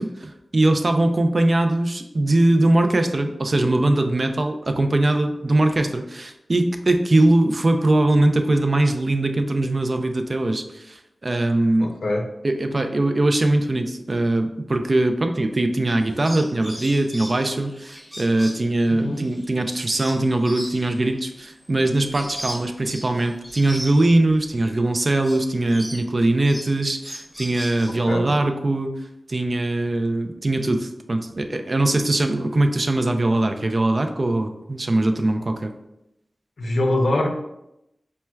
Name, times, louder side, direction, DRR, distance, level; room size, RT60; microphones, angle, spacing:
voice 1, 0.0-11.9 12.4-29.0 29.3-35.7, right 2 dB, 55° right, 6 dB, 0.3 m, -21 dB
voice 2, 11.8-12.3 18.9-19.2 27.9-28.3 36.6-37.3, left 1 dB, 85° left, 1 dB, 0.5 m, -23 dB
sound 1, 15.9-24.8 25.1-28.1, equal, ahead, 0.6 m, -39 dB
4.3 x 2.1 x 2.2 m, 0.85 s
cardioid pair, 40°, 0 cm